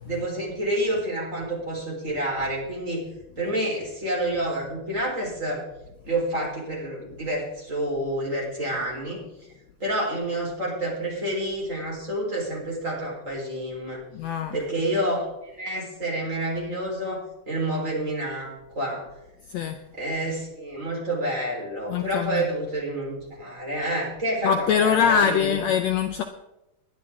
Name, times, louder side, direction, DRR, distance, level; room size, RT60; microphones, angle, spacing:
voice 1, 0.0-3.0 3.4-5.6 6.1-9.2 9.8-14.0 14.5-19.0 19.9-25.6, right 1 dB, 25° right, -3 dB, 4.4 m, -29 dB
voice 2, 14.1-14.6 19.5-19.8 21.9-22.4 24.4-26.2, left 7 dB, 70° left, 6 dB, 1.8 m, -23 dB
20.5 x 11.0 x 3.7 m, 0.91 s
omnidirectional pair, 3.7 m